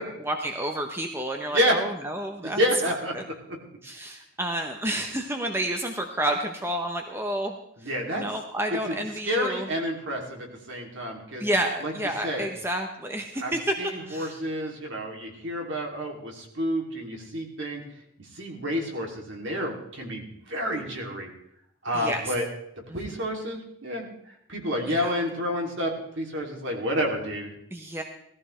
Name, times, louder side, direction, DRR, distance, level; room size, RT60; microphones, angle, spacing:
voice 1, 0.2-2.6 2.8-3.2 3.8-7.9 8.2-9.7 11.4-13.8 14.1-14.4 21.9-22.3 22.9-23.2 24.9-25.2 27.7-28.0, right 1 dB, 10° right, 4 dB, 0.8 m, -30 dB
voice 2, 1.5-1.8 2.4-3.3 7.8-8.2 8.9-9.0 9.2-11.4 11.8-11.9 12.2-12.5 13.4-13.5 13.8-17.8 18.4-21.3 21.8-22.4 22.9-24.1 24.5-27.5, equal, 60° right, 0 dB, 2.8 m, -29 dB
18.5 x 14.0 x 3.3 m, 0.72 s
head